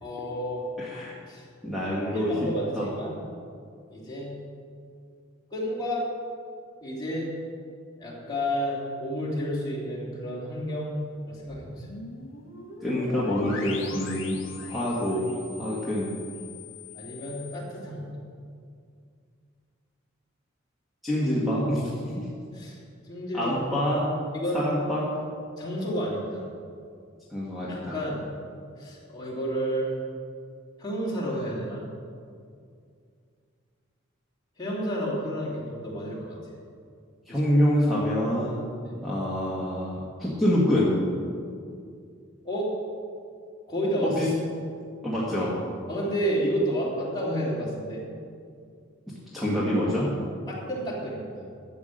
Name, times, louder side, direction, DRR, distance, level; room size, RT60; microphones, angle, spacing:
voice 1, 0.0-0.6 1.3-1.4 2.0-3.2 3.9-4.4 5.5-6.0 6.8-7.3 8.0-11.9 16.9-18.2 22.5-22.8 23.0-23.5 24.3-24.7 25.6-26.4 27.7-28.3 28.8-30.0 30.8-31.9 34.6-36.4 37.3-37.4 38.8-38.9 42.4-42.7 43.7-44.1 45.9-48.0 50.5-51.5, equal, 20° left, -6 dB, 3.0 m, -30 dB
voice 2, 0.8-1.1 1.6-2.3 2.7-2.9 12.8-15.3 15.6-16.1 21.0-22.0 23.3-24.1 24.5-25.1 27.3-28.0 37.3-38.6 39.0-40.9 44.0-44.3 45.0-45.5 49.3-50.2, left 1 dB, ahead, -8 dB, 1.7 m, -26 dB
sound 1, 11.5-17.6, left 4 dB, 75° left, 1.5 m, -42 dB
12.0 x 7.1 x 7.9 m, 2.3 s
head